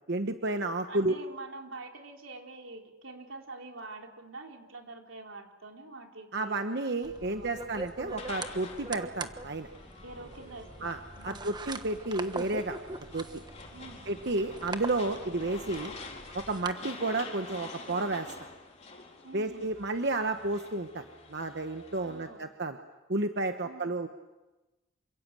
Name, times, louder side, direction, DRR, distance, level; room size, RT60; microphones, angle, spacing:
voice 1, 0.1-1.1 6.3-9.7 10.8-12.8 13.1-13.3 14.1-15.9 16.3-18.3 19.3-21.0 21.3-22.8 23.1-24.1, right 2 dB, 55° right, 6 dB, 1.2 m, -31 dB
voice 2, 0.9-6.6 7.2-7.6 10.0-11.5 13.7-14.1 19.2-19.7 22.0-22.5 23.6-24.0, right 3 dB, 85° right, 2 dB, 3.8 m, -46 dB
sound 1, 7.0-16.7, right 3 dB, 20° right, 1.2 m, -43 dB
sound 2, 8.1-22.3, left 3 dB, 35° left, 4.3 m, -48 dB
28.0 x 26.0 x 7.7 m, 1.1 s
head